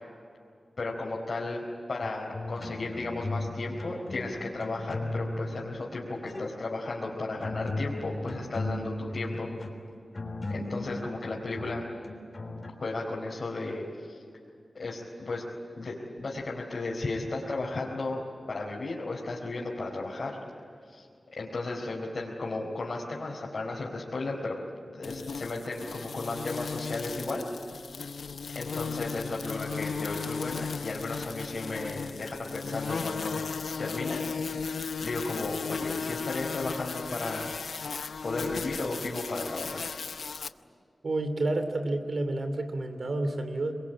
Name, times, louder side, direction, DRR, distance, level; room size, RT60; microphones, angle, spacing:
voice 1, 0.8-1.6 1.9-9.5 10.5-11.8 12.8-14.2 14.7-15.4 15.8-20.4 20.9-21.1 21.4-24.6 24.9-27.4 28.5-33.4 33.8-34.4 35.0-37.5 38.2-39.8, left 2 dB, 60° left, -4 dB, 4.1 m, -34 dB
sound 1, 2.0-3.5 3.8-5.6 6.1-6.5 7.1-12.7, left 2 dB, 40° left, 3.7 m, -36 dB
sound 2, 25.0-40.5, left 5 dB, 85° left, 0.7 m, -36 dB
voice 2, 41.0-43.7, right 2 dB, 60° right, 8 dB, 2.8 m, -30 dB
27.0 x 22.0 x 8.9 m, 2.4 s
wide cardioid pair, 110°, 0 cm